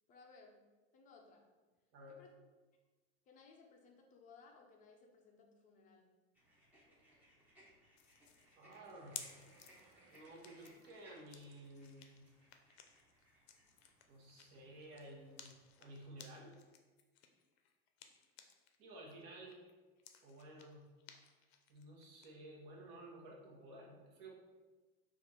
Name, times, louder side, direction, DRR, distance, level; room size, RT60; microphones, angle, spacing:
voice 1, 0.1-0.6 0.9-1.5 2.1-2.3 3.3-6.1, left 4 dB, 25° left, 1 dB, 0.5 m, -62 dB
voice 2, 1.9-2.2 8.6-9.3 10.1-12.3 14.1-16.6 18.8-19.6 20.2-20.9 21.7-24.3, right 1 dB, 45° right, -3 dB, 1.2 m, -54 dB
sound 1, 6.3-16.1, equal, 5° right, 0.9 m, -68 dB
sound 2, 8.0-18.8 19.1-22.3, left 9 dB, 80° left, 0.6 m, -57 dB
sound 3, 8.8-13.2 13.6-13.7, right 3 dB, 70° right, 0.8 m, -71 dB
4.2 x 2.5 x 4.3 m, 1.3 s
supercardioid pair, 145°, 31 cm